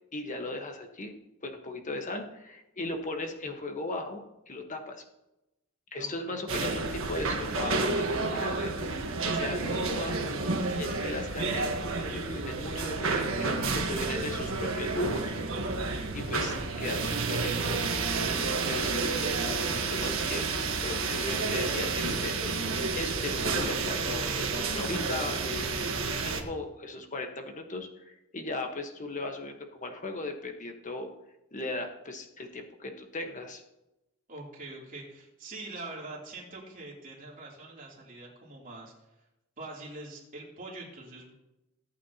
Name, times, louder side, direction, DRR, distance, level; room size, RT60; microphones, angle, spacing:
voice 1, 0.1-1.1 1.4-5.0 5.9-10.4 10.8-15.3 16.1-17.8 18.1-20.5 20.8-22.6 22.9-25.7 26.2-31.1 31.5-33.6, left 2 dB, 35° left, 4 dB, 1.3 m, -37 dB
voice 2, 6.0-6.4 34.3-38.9 39.6-41.3, right 2 dB, 40° right, -4 dB, 3.2 m, -44 dB
sound 1, 6.5-26.4, right 3 dB, 70° right, 1.4 m, -30 dB
18.0 x 8.5 x 3.0 m, 0.93 s
head